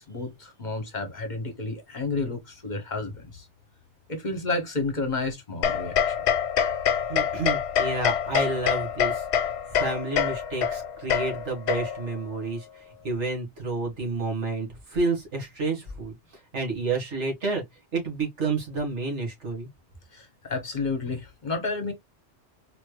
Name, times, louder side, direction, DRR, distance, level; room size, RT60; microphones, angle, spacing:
voice 1, 0.0-3.5 4.1-6.2 20.1-21.9, left 3 dB, 45° left, 1.0 m, -31 dB
sound 1, 5.6-12.2, left 8 dB, 70° left, 0.8 m, -26 dB
voice 2, 7.1-16.1 16.5-17.6 17.9-19.7, right 3 dB, 80° right, 2.0 m, -30 dB
4.2 x 3.2 x 2.2 m
omnidirectional pair, 1.2 m